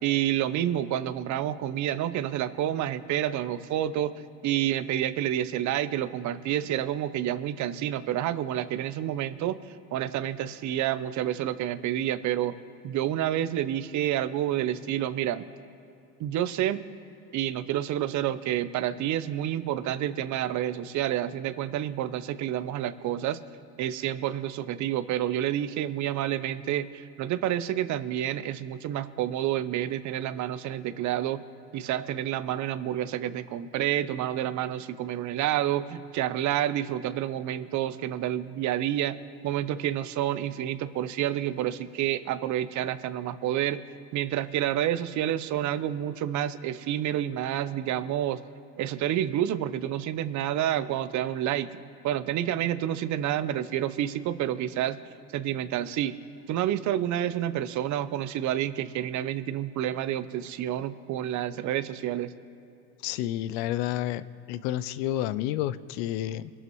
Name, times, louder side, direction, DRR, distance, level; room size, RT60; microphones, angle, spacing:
voice 1, 0.0-9.6 9.9-12.6 12.8-15.5 16.2-16.8 17.3-23.4 23.8-31.4 31.7-39.2 39.4-43.8 44.1-48.4 48.8-55.0 55.3-56.1 56.5-62.3, right 11 dB, 60° right, 13 dB, 0.8 m, -29 dB
voice 2, 63.0-66.5, left 13 dB, 80° left, 16 dB, 0.6 m, -30 dB
22.5 x 12.0 x 3.1 m, 2.7 s
supercardioid pair, 85°, 34 cm